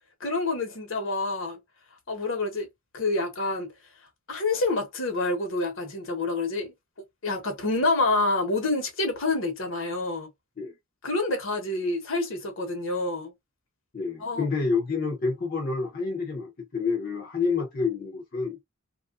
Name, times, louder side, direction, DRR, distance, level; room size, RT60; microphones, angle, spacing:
voice 1, 0.2-1.6 2.1-2.7 2.9-3.7 4.3-6.7 7.2-10.3 11.0-13.3 14.2-14.4, left 2 dB, 70° left, 1.1 m, -27 dB
voice 2, 13.9-18.6, left 4 dB, 45° left, 0.7 m, -28 dB
3.0 x 2.4 x 2.4 m
head